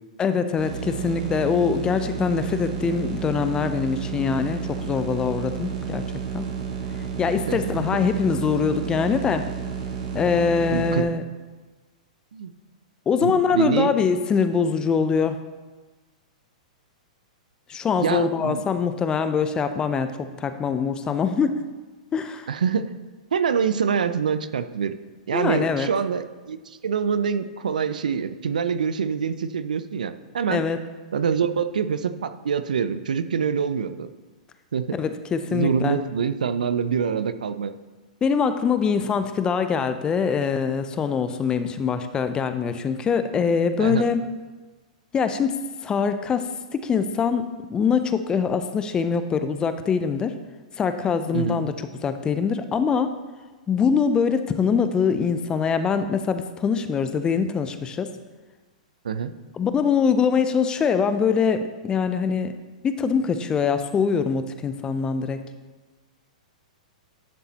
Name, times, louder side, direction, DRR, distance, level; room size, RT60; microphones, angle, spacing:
voice 1, 0.2-6.0 6.3-6.5 7.2-9.4 10.1-11.2 13.1-15.4 17.7-21.5 22.1-22.5 25.3-25.9 30.5-30.8 34.9-36.0 38.2-44.2 45.1-45.5 45.8-46.5 46.7-50.3 50.8-51.7 52.0-53.1 53.7-58.1 59.5-62.5 62.8-65.4, left 6 dB, 20° left, 10 dB, 0.6 m, -23 dB
sound 1, 0.6-11.0, right 6 dB, 50° right, 2.1 m, -31 dB
voice 2, 7.5-8.0 10.7-11.1 12.3-12.5 13.2-13.9 18.0-18.6 22.5-22.8 23.3-25.0 25.3-30.6 31.1-34.1 34.7-34.9 35.5-37.7 43.8-44.0 51.3-51.6 59.0-59.3, right 6 dB, 85° right, 12 dB, 0.5 m, -25 dB
10.5 x 7.1 x 2.9 m, 1.3 s
hypercardioid pair, 125°, 4 cm